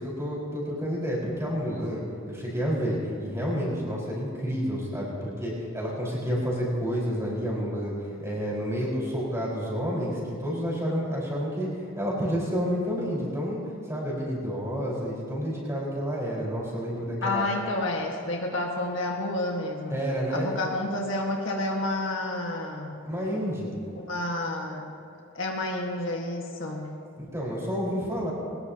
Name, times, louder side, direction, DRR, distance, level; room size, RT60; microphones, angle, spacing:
voice 1, 0.0-11.7 11.9-13.6 13.9-17.5 19.9-20.5 23.1-23.7 27.2-28.3, equal, 15° right, -5 dB, 4.7 m, -29 dB
voice 2, 17.2-20.0 20.3-23.0 24.1-24.9 25.3-27.0, left 2 dB, 65° left, 0 dB, 1.7 m, -30 dB
22.0 x 19.5 x 2.9 m, 2.4 s
head